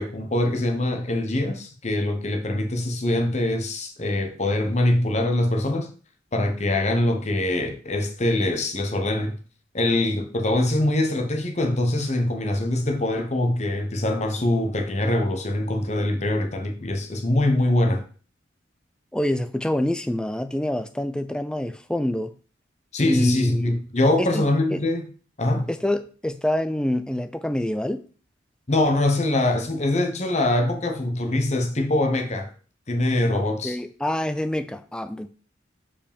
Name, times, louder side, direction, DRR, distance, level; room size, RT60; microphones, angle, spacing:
voice 1, 0.0-5.9 6.3-9.3 9.7-18.0 22.9-25.1 25.4-25.7 28.7-32.5 32.9-33.8, left 1 dB, 35° left, 1.0 m, -23 dB
voice 2, 19.1-22.3 23.0-23.8 24.2-24.4 24.7-24.8 25.7-28.0 33.3-35.3, left 1 dB, 5° left, 0.4 m, -26 dB
5.0 x 4.9 x 5.2 m
head